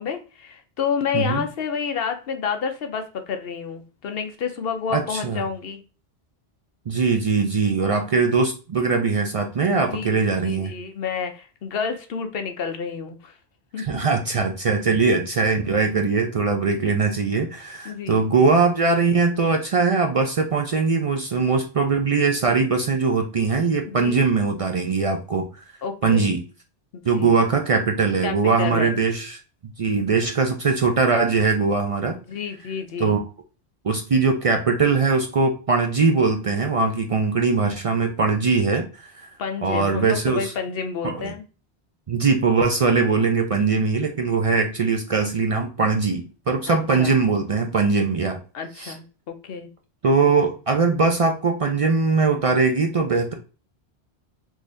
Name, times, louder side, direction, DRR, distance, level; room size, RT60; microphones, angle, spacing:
voice 1, 0.0-5.8 9.7-13.3 13.7-13.9 17.8-18.2 23.9-24.2 25.8-26.3 26.9-27.3 28.2-29.0 32.1-33.2 39.4-41.4 43.8-43.9 46.7-47.1 48.5-49.7, left 6 dB, 65° left, 6 dB, 0.8 m, -29 dB
voice 2, 1.1-1.5 4.9-5.4 6.9-10.7 13.8-25.5 26.0-26.4 27.1-29.4 29.8-32.2 33.0-33.2 33.8-39.3 39.6-40.5 41.0-41.3 42.1-48.4 48.8-48.9 50.0-53.3, right 4 dB, 55° right, 4 dB, 0.3 m, -21 dB
3.8 x 3.1 x 2.5 m, 0.35 s
omnidirectional pair, 1.1 m